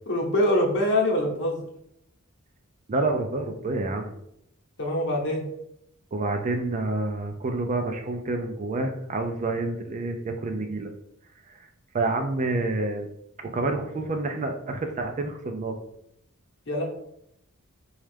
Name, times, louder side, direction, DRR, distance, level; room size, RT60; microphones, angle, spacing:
voice 1, 0.1-1.6 4.8-5.4 16.7-16.8, left 1 dB, 55° left, -1 dB, 0.8 m, -24 dB
voice 2, 2.9-4.1 6.1-10.9 11.9-13.1 13.4-15.8, right 2 dB, 35° right, 5 dB, 0.4 m, -28 dB
4.2 x 2.3 x 3.3 m, 0.76 s
head